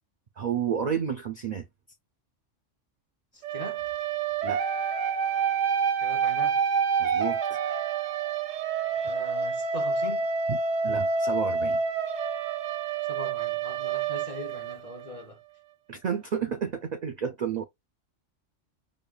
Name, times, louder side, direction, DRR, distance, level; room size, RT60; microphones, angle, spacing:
voice 1, 0.4-1.6 4.4-4.6 7.0-7.4 10.5-10.6 10.8-11.8 15.9-17.6, right 7 dB, 65° right, 0.4 m, -30 dB
voice 2, 3.3-3.8 6.0-6.6 9.0-10.3 13.1-15.4, left 1 dB, 35° left, 0.7 m, -41 dB
sound 1, 3.4-15.2, right 6 dB, 90° right, 1.1 m, -28 dB
5.2 x 2.2 x 2.3 m
omnidirectional pair, 1.3 m